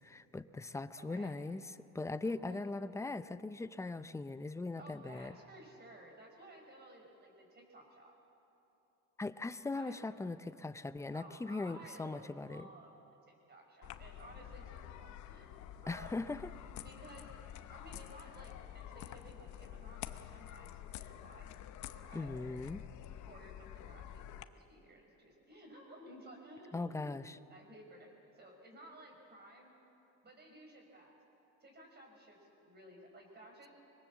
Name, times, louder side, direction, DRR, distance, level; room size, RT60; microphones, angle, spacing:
voice 1, 0.0-1.6 1.9-5.4 9.2-12.7 15.9-16.4 22.1-22.8 26.7-27.3, left 3 dB, 10° left, 13 dB, 0.5 m, -40 dB
voice 2, 1.0-1.4 2.2-2.7 4.8-8.1 9.7-10.0 11.1-12.9 13.3-16.3 16.8-17.3 17.7-21.6 21.9-22.3 23.3-27.2 27.5-29.7 30.2-31.2 31.6-33.7, right 1 dB, 30° right, 1 dB, 5.4 m, -56 dB
sound 1, 13.8-24.4, left 11 dB, 60° left, 1.0 m, -49 dB
25.0 x 21.0 x 7.3 m, 3.0 s
cardioid pair, 125°, 32 cm